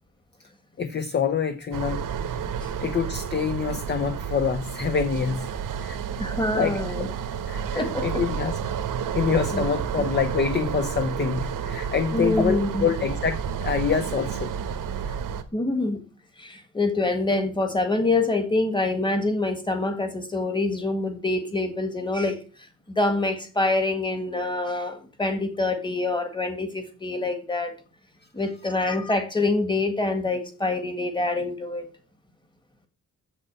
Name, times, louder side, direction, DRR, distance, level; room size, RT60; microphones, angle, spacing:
voice 1, 0.8-2.0 2.8-5.5 5.8-6.0 6.5-6.8 7.5-8.6 9.1-14.5 15.0-15.2, left 6 dB, 35° left, 0.8 m, -26 dB
sound 1, 1.7-15.4, right 7 dB, 90° right, 1.2 m, -30 dB
voice 2, 6.2-7.1 7.8-8.2 9.5-9.6 12.1-12.9 15.5-16.0 16.4-22.4 22.9-27.8 28.3-31.9, left 2 dB, 15° left, 1.8 m, -26 dB
8.2 x 7.5 x 7.6 m
wide cardioid pair, 160°, 31 cm